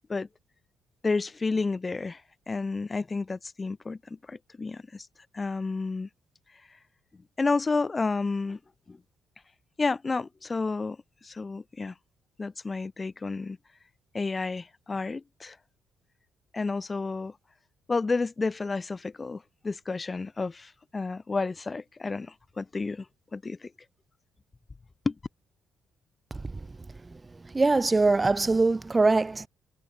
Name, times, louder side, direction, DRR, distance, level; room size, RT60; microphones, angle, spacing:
voice 1, 1.0-2.2 2.5-5.1 5.3-6.1 7.4-8.6 8.9-9.0 9.8-11.0 11.2-11.9 12.4-13.6 14.1-15.6 16.5-17.3 17.9-23.0 23.3-23.7 25.0-25.1, left 3 dB, 25° left, 1.7 m, -31 dB
voice 2, 27.5-29.5, right 3 dB, 20° right, 0.5 m, -22 dB
cardioid pair, 90°, 0 cm